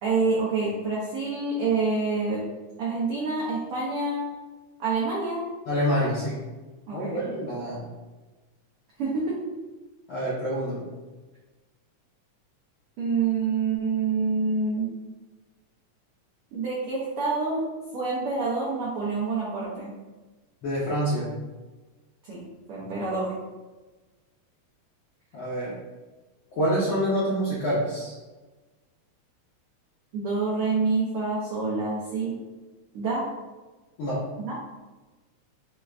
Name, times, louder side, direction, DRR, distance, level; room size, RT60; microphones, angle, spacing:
voice 1, 0.0-2.4 2.8-4.3 4.8-5.4 6.9-7.3 9.0-9.4 13.0-14.9 16.5-17.6 17.9-19.9 22.2-22.4 22.7-23.3 30.1-32.4 32.9-33.3 34.4-34.5, right 4 dB, 80° right, -6 dB, 1.2 m, -27 dB
voice 2, 5.7-6.4 6.9-7.8 10.1-10.8 20.6-21.3 25.3-25.7 26.6-28.2 34.0-34.2, equal, 80° left, -8 dB, 1.1 m, -27 dB
5.1 x 2.4 x 3.3 m, 1.2 s
omnidirectional pair, 3.4 m